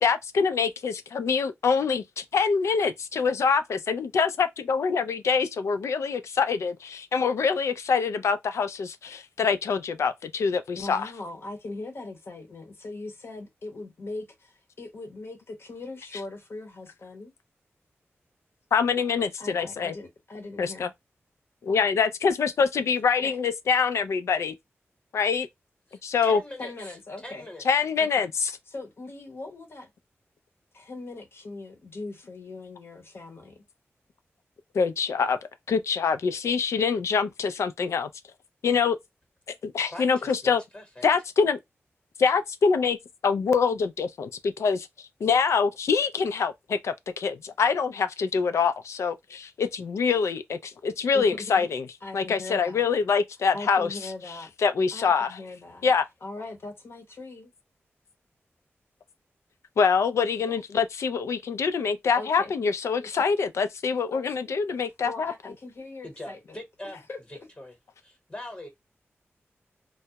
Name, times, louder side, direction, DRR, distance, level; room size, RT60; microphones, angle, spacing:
voice 1, 0.0-11.1 18.7-19.9 20.6-20.9 21.6-24.5 25.1-25.5 26.0-26.4 27.7-28.5 34.7-35.4 35.7-38.1 38.6-39.0 39.6-40.6 41.0-41.6 42.2-43.0 43.2-44.9 45.2-51.8 52.1-54.0 54.6-55.4 55.8-56.0 59.8-65.3, left 5 dB, 90° left, 0.3 m, -25 dB
voice 2, 10.8-17.3 19.4-20.9 23.2-23.4 26.6-27.4 28.0-28.3 28.7-29.9 30.7-33.6 51.1-51.7 52.0-52.9 53.5-54.5 54.9-55.9 56.2-57.5 62.2-62.5 63.0-63.1 64.1-64.3 65.0-66.6 67.1-67.5, left 2 dB, 55° left, 0.7 m, -40 dB
voice 3, 25.9-27.0 27.2-27.6 39.9-41.0 66.0-67.0 67.6-67.7 68.0-68.7, left 1 dB, 25° left, 1.0 m, -42 dB
2.2 x 2.0 x 2.7 m
wide cardioid pair, 105°, 5 cm